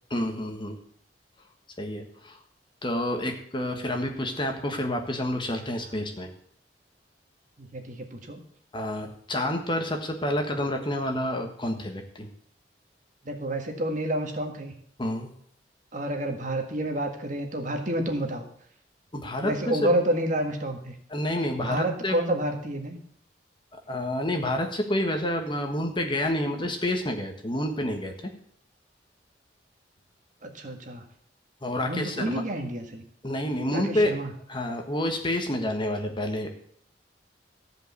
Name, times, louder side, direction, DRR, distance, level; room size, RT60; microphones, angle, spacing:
voice 1, 0.1-0.8 1.8-2.4 2.8-6.3 8.7-12.3 15.0-15.3 19.1-19.9 21.1-22.2 23.7-28.3 31.6-32.4 33.2-34.1 34.5-36.6, left 1 dB, 25° left, 4 dB, 1.4 m, -29 dB
voice 2, 7.6-8.4 13.2-14.7 15.9-18.4 19.4-20.9 21.6-23.0 30.4-31.0 31.8-33.0 33.7-34.3, right 1 dB, 45° right, 4 dB, 1.7 m, -29 dB
14.5 x 5.2 x 8.3 m, 0.65 s
head